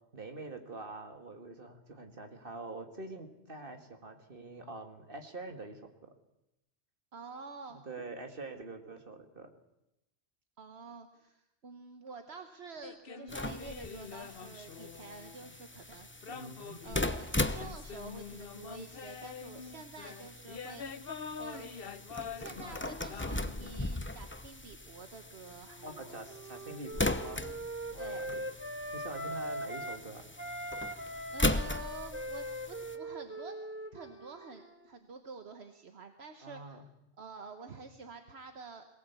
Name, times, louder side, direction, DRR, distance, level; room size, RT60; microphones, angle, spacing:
voice 1, 0.1-6.2 7.8-9.6 16.3-16.8 25.8-27.5 27.9-28.5 28.9-30.3 36.4-36.9 37.7-37.8, right 2 dB, 55° right, 5 dB, 2.3 m, -45 dB
voice 2, 7.1-7.8 10.6-16.4 16.8-20.8 21.4-21.7 22.3-26.1 28.0-28.3 31.3-33.6 33.9-36.8 37.2-38.9, right 4 dB, 75° right, 6 dB, 1.5 m, -49 dB
sound 1, 12.8-15.5 16.2-24.0, left 6 dB, 60° left, 1.2 m, -45 dB
sound 2, 13.3-33.0, left 2 dB, 10° left, 0.8 m, -38 dB
Wind instrument woodwind instrument, 25.7-30.1 30.4-34.9, right 1 dB, 10° right, 1.5 m, -41 dB
22.5 x 18.0 x 8.3 m, 0.89 s
omnidirectional pair, 1.1 m